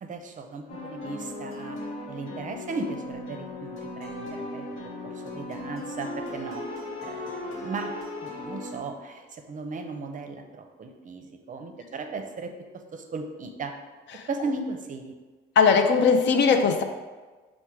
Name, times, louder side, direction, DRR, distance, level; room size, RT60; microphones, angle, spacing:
voice 1, 0.0-1.8 2.1-4.6 5.0-6.6 7.0-7.9 8.2-12.5 12.9-13.7 14.3-15.1, right 3 dB, 40° right, 5 dB, 0.5 m, -36 dB
sound 1, 0.7-8.8, left 1 dB, 90° left, 0.9 m, -37 dB
voice 2, 15.6-16.8, left 5 dB, 65° left, 6 dB, 0.5 m, -19 dB
4.3 x 2.2 x 4.6 m, 1.3 s
cardioid pair, 90°, 20 cm